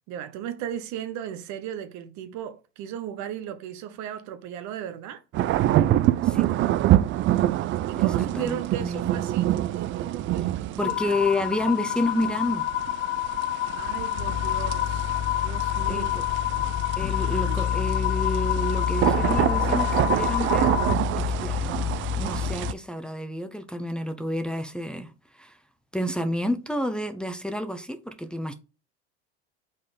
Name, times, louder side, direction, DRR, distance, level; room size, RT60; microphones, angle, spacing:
voice 1, 0.0-5.2 7.9-11.2 13.7-15.1 15.4-16.3 17.1-17.7, right 10 dB, 55° right, 1.0 m, -36 dB
sound 1, 5.3-22.7, right 14 dB, 35° right, 0.4 m, -26 dB
voice 2, 8.0-9.2 10.8-12.7 15.9-16.2 17.0-25.6 25.9-28.5, left 1 dB, 5° left, 0.9 m, -30 dB
sound 2, 10.8-21.0, left 14 dB, 85° left, 0.6 m, -29 dB
sound 3, 14.2-22.7, left 9 dB, 30° left, 0.4 m, -29 dB
5.5 x 4.0 x 5.2 m
hypercardioid pair, 80°, 34 cm